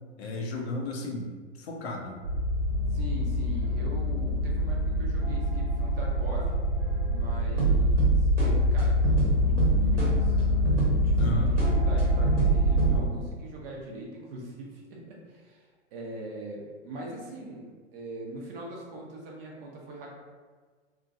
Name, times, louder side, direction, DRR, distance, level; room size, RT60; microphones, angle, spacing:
voice 1, 0.2-2.2 11.2-11.5, left 1 dB, 60° left, 0 dB, 0.7 m, -34 dB
sound 1, 2.2-13.0, equal, 80° right, 1.2 m, -24 dB
voice 2, 2.9-6.6 7.1-20.1, right 1 dB, 50° right, -2 dB, 0.9 m, -41 dB
3.0 x 2.6 x 2.5 m, 1.5 s
hypercardioid pair, 105°, 37 cm